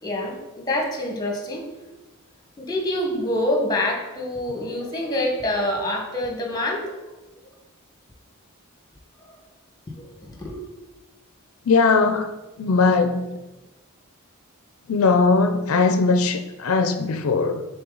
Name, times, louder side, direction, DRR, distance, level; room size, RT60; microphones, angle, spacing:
voice 1, 0.0-1.7 2.6-6.9 9.9-10.6, left 1 dB, 20° left, 1 dB, 1.2 m, -26 dB
voice 2, 11.7-12.3 12.6-13.4 14.9-17.6, left 4 dB, 75° left, 8 dB, 0.5 m, -19 dB
6.8 x 3.8 x 3.9 m, 1.1 s
head